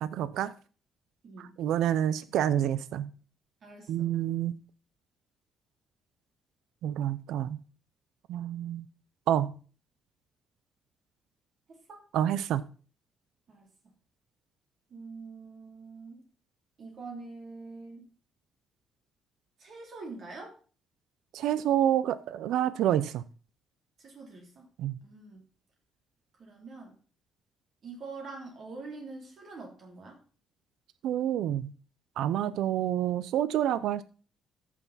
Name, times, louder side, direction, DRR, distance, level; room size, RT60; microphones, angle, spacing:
voice 1, 0.0-0.5 1.4-3.1 3.9-4.5 6.8-7.6 8.3-8.9 9.3-9.5 12.1-12.6 21.3-23.2 24.8-25.0 31.0-31.7 32.2-34.0, right 11 dB, 85° right, 0.5 m, -28 dB
voice 2, 1.2-1.6 3.6-4.1 11.7-12.0 13.5-13.6 14.9-16.2 16.8-18.1 19.6-20.6 24.0-24.7 25.0-25.4 26.4-27.0 27.8-30.2, right 3 dB, 55° right, 3.0 m, -45 dB
14.0 x 5.9 x 4.1 m
cardioid pair, 90°, 0 cm